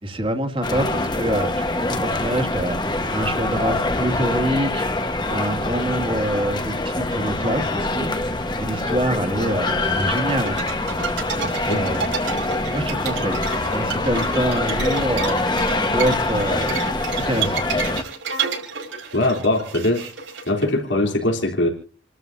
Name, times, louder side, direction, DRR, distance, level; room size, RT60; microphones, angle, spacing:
voice 1, 0.0-2.8 3.1-4.9 5.3-8.1 8.6-10.6 11.4-12.0 12.7-13.4 13.7-15.4 15.9-16.8 17.1-17.6, right 1 dB, 30° right, 5 dB, 2.3 m, -25 dB
sound 1, 0.6-18.0, left 2 dB, 25° left, 1.3 m, -24 dB
sound 2, 10.2-20.6, right 6 dB, 90° right, 5.6 m, -30 dB
voice 2, 19.1-20.1 20.5-21.7, left 1 dB, 85° left, 1 dB, 3.6 m, -21 dB
29.0 x 13.0 x 2.7 m, 0.42 s
head